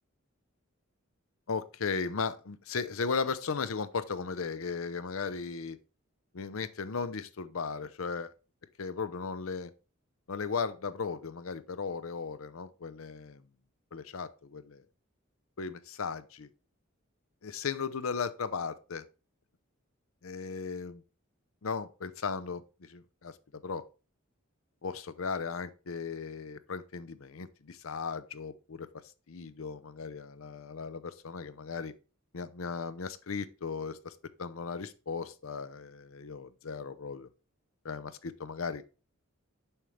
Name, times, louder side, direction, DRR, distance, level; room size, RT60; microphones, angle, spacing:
voice 1, 1.5-5.8 6.3-8.3 8.8-9.7 10.3-13.4 13.9-14.8 15.6-16.5 17.4-19.1 20.2-21.0 21.6-23.8 24.8-28.9 29.3-31.9 32.3-37.3 37.8-38.8, left 5 dB, 75° left, 0.6 m, -36 dB
7.3 x 5.1 x 3.2 m
head